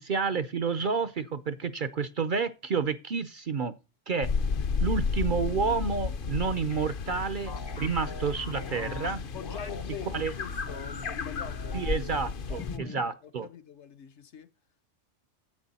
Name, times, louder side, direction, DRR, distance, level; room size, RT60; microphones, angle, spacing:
voice 1, 0.0-3.7 4.1-4.3 4.8-9.2 10.1-10.3 11.7-13.5, right 5 dB, 50° right, 0.7 m, -30 dB
sound 1, 4.2-12.8, left 5 dB, 50° left, 0.8 m, -33 dB
sound 2, 7.5-9.8 10.3-12.2 12.5-13.1, left 3 dB, 25° left, 0.6 m, -43 dB
voice 2, 9.3-11.9 12.5-14.5, left 8 dB, 65° left, 1.2 m, -44 dB
11.0 x 8.5 x 4.1 m
omnidirectional pair, 1.3 m